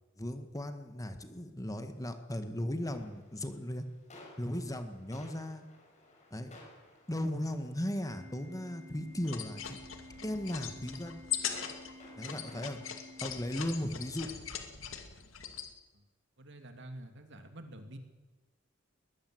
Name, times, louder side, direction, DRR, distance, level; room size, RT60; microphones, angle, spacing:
voice 1, 0.2-3.8 4.4-5.6 6.3-6.5 7.1-9.8 10.2-11.2 12.2-12.8 13.2-14.3, left 1 dB, 15° left, 8 dB, 1.7 m, -37 dB
sound 1, 2.8-14.4, left 1 dB, 35° left, 6.0 m, -58 dB
Organ, 8.1-14.1, left 1 dB, 35° right, 1.8 m, -53 dB
sound 2, 9.2-15.7, left 9 dB, 85° left, 2.4 m, -41 dB
voice 2, 16.4-18.0, right 1 dB, 65° right, 6 dB, 2.9 m, -48 dB
21.5 x 20.0 x 8.0 m, 1.2 s
head